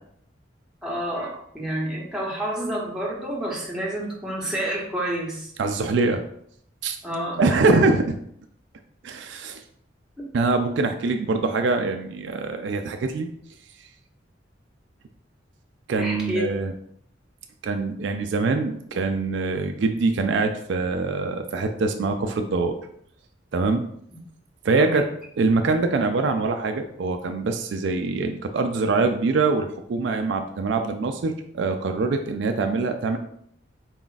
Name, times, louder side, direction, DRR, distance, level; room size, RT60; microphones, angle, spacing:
voice 1, 0.8-5.5 7.0-7.6 16.0-16.5 24.8-25.0, right 1 dB, 5° right, -4 dB, 1.0 m, -29 dB
voice 2, 5.6-6.2 6.8-7.0 7.4-8.1 9.0-9.6 10.3-13.3 15.9-16.7 17.6-22.8 23.5-23.8 24.6-25.0 25.4-33.2, right 3 dB, 65° right, 6 dB, 0.4 m, -24 dB
4.2 x 2.3 x 3.9 m, 0.68 s
head